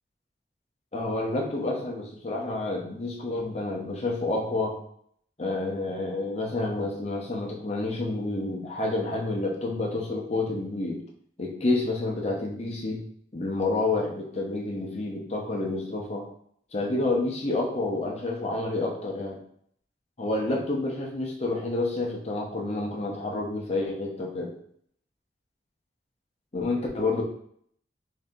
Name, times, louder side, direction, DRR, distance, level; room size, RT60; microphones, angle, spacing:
voice 1, 0.9-4.8 5.4-11.0 11.4-13.0 13.3-16.2 16.7-19.4 20.2-24.5 26.5-27.2, left 2 dB, 35° left, -1 dB, 0.7 m, -29 dB
3.1 x 2.8 x 3.6 m, 0.64 s
head